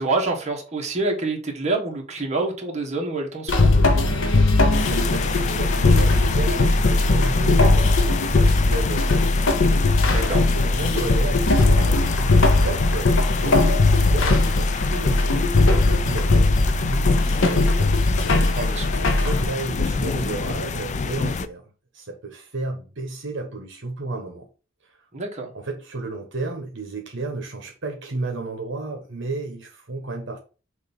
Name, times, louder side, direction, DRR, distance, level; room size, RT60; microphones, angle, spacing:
voice 1, 0.0-3.7 10.1-10.4 18.6-18.9 25.1-25.5, right 3 dB, 35° right, 1.6 m, -27 dB
sound 1, 3.5-19.4, left 2 dB, 65° left, 0.9 m, -19 dB
sound 2, 4.7-21.5, left 5 dB, 35° left, 0.4 m, -29 dB
voice 2, 4.8-9.4 10.3-18.0 19.1-21.6 21.9-24.5 24.9-25.0 25.5-30.4, right 2 dB, 65° right, 1.2 m, -32 dB
6.5 x 2.7 x 5.4 m
head